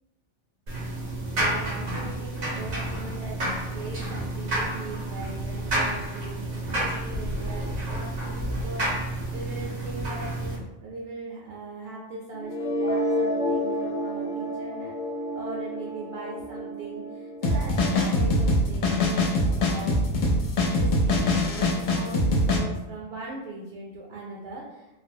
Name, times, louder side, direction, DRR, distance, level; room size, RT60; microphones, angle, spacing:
sound 1, 0.7-10.6, right 1 dB, 80° right, 1.4 m, -30 dB
voice 1, 1.4-14.9 15.3-20.0 20.7-24.9, right 2 dB, 65° right, -3 dB, 0.8 m, -40 dB
sound 2, 12.3-18.3, equal, 45° left, 0.6 m, -30 dB
sound 3, 17.4-22.6, left 1 dB, 75° left, 1.0 m, -23 dB
3.8 x 2.0 x 2.7 m, 0.97 s
omnidirectional pair, 1.4 m